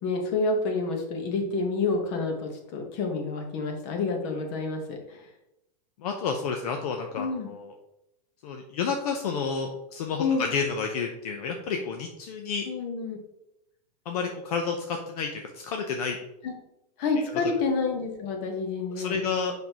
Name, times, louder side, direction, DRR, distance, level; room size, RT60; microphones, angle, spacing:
voice 1, 0.0-5.3 7.2-7.5 10.2-10.5 12.6-13.2 16.4-16.5 17.0-19.2, left 3 dB, 40° left, 3 dB, 1.4 m, -28 dB
voice 2, 6.0-7.7 8.4-12.7 14.1-16.2 19.0-19.5, left 5 dB, 65° left, 3 dB, 0.8 m, -30 dB
6.3 x 5.3 x 3.0 m, 0.86 s
supercardioid pair, 155°, 21 cm